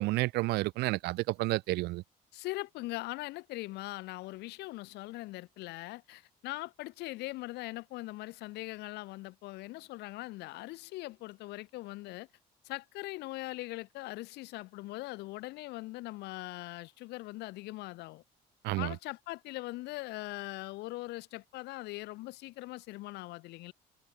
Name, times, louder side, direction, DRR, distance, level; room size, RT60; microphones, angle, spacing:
voice 1, 0.0-2.0 18.6-18.9, right 20 dB, 80° right, 0.5 m, -30 dB
voice 2, 2.3-12.3 12.6-18.2 18.8-23.7, left 20 dB, 90° left, 1.9 m, -41 dB
cardioid pair, 110°, 17 cm